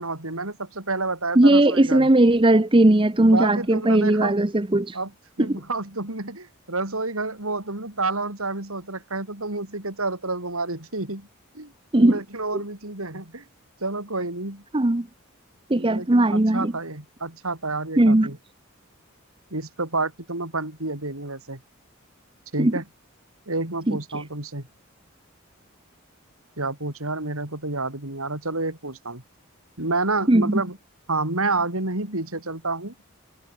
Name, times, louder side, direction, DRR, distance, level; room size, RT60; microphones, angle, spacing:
voice 1, 0.0-2.1 3.2-4.3 4.9-5.1 5.4-11.3 11.5-11.7 12.0-13.4 13.8-14.6 15.7-18.4 19.5-21.6 22.5-22.8 23.5-24.6 26.6-29.2 29.8-30.8 31.1-32.9, right 3 dB, 75° right, 5.2 m, -29 dB
voice 2, 1.4-5.0 5.4-5.6 11.9-12.2 14.7-15.1 15.7-16.7 18.0-18.3 22.6-22.7 23.9-24.0 30.3-30.6, right 1 dB, 25° right, 0.8 m, -18 dB
head